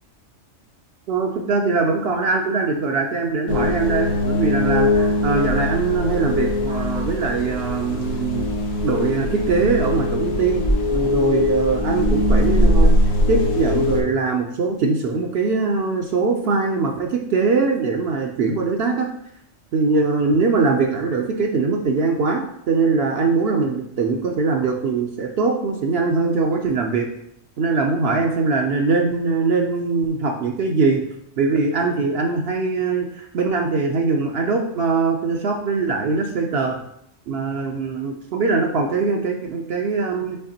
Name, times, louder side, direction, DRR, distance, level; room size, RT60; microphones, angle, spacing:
voice 1, 1.1-8.4 8.8-10.6 10.9-12.9 13.3-19.1 19.7-27.1 27.6-31.0 31.4-36.8 37.3-40.4, right 4 dB, 65° right, 2 dB, 0.7 m, -22 dB
sound 1, 3.5-14.0, left 1 dB, 70° left, 1.1 m, -21 dB
5.6 x 3.3 x 2.8 m, 0.72 s
omnidirectional pair, 1.2 m